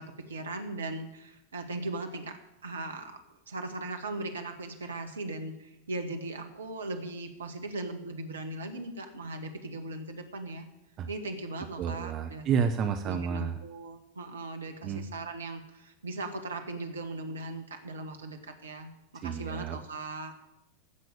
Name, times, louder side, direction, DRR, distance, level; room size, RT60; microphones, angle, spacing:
voice 1, 0.0-10.7 11.1-12.5 13.0-20.3, right 2 dB, 70° right, 7 dB, 1.6 m, -38 dB
voice 2, 11.8-13.6 14.8-15.1 19.1-19.8, right 7 dB, 35° right, 7 dB, 0.9 m, -30 dB
15.5 x 6.1 x 8.9 m, 0.88 s
figure-of-eight pair, 90°, 0 cm